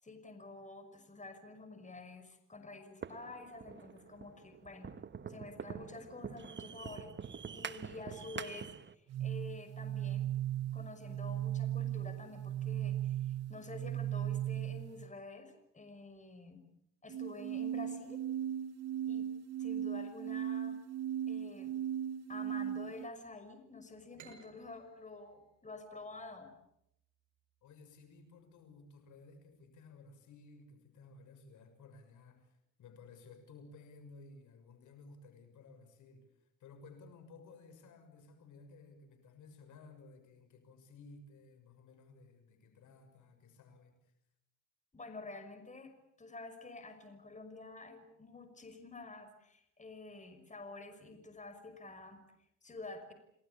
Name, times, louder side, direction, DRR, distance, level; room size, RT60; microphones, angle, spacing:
voice 1, 0.0-4.9 5.3-10.3 10.7-16.6 17.0-18.2 19.1-19.3 19.6-20.8 21.3-21.7 22.3-26.5 44.9-45.9 46.2-52.2 52.6-53.1, left 3 dB, 25° left, 8 dB, 6.0 m, -49 dB
sound 1, 3.0-8.9, right 7 dB, 35° right, 1.4 m, -46 dB
sound 2, 9.1-15.1 17.1-23.1, right 11 dB, 55° right, 1.0 m, -37 dB
sound 3, 24.2-27.6, right 7 dB, 75° right, 6.8 m, -61 dB
voice 2, 27.6-44.1, left 3 dB, 75° left, 7 dB, 6.4 m, -57 dB
30.0 x 19.0 x 8.6 m, 0.79 s
cardioid pair, 90°, 30 cm